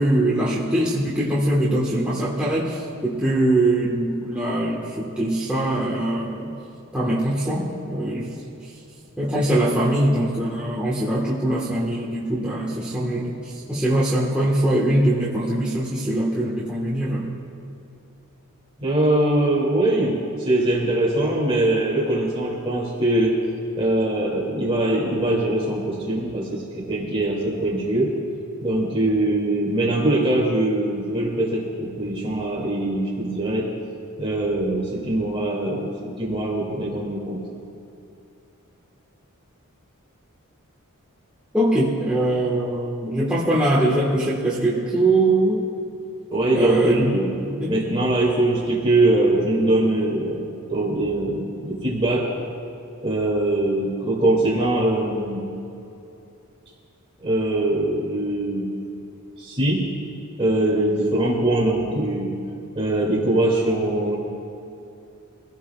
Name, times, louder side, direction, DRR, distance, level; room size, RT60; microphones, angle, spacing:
voice 1, 0.0-6.5 6.9-8.4 9.2-17.3 41.5-45.7 46.5-47.1 47.4-47.7, right 1 dB, 5° right, -7 dB, 1.4 m, -22 dB
voice 2, 18.8-23.3 23.8-28.1 28.6-33.7 34.2-37.4 46.3-47.3 47.7-52.2 53.0-55.4 57.2-58.7 59.4-59.8 60.4-62.3 62.7-64.2, right 1 dB, 25° right, -4 dB, 2.5 m, -22 dB
24.5 x 16.0 x 2.4 m, 2.7 s
head